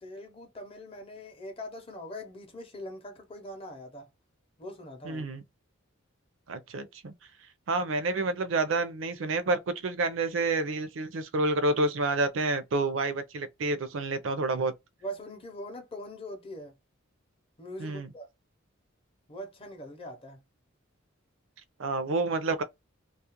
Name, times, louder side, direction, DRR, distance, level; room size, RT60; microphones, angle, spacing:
voice 1, 0.0-4.1 4.6-5.2 15.0-16.8 17.6-18.3 19.3-20.4, equal, 25° left, 0.6 m, -42 dB
voice 2, 5.0-5.4 6.5-7.1 7.7-14.7 17.8-18.1 21.8-22.6, right 2 dB, 65° right, 0.5 m, -29 dB
2.4 x 2.1 x 2.8 m
head